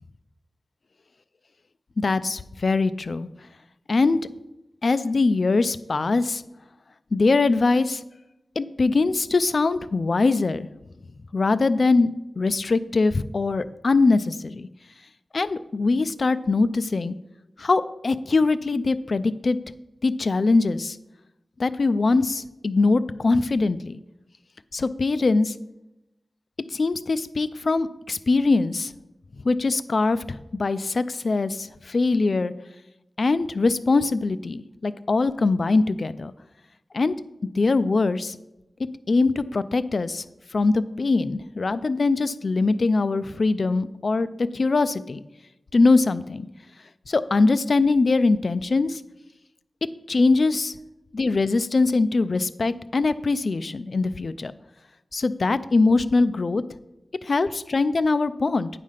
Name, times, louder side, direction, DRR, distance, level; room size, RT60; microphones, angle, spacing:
voice 1, 2.0-3.3 3.9-4.2 4.8-6.4 7.1-8.0 8.6-10.7 11.3-14.7 15.3-17.1 17.6-19.6 20.0-21.0 21.6-24.0 24.7-25.5 26.7-28.9 29.4-32.5 33.2-36.3 36.9-37.1 37.6-38.4 39.1-40.2 40.5-45.2 45.7-46.5 47.1-49.0 50.1-50.8 51.1-54.5 55.1-56.6 57.2-58.7, left 3 dB, 50° left, 14 dB, 0.4 m, -22 dB
9.3 x 5.0 x 5.6 m, 0.92 s
wide cardioid pair, 100°, 0 cm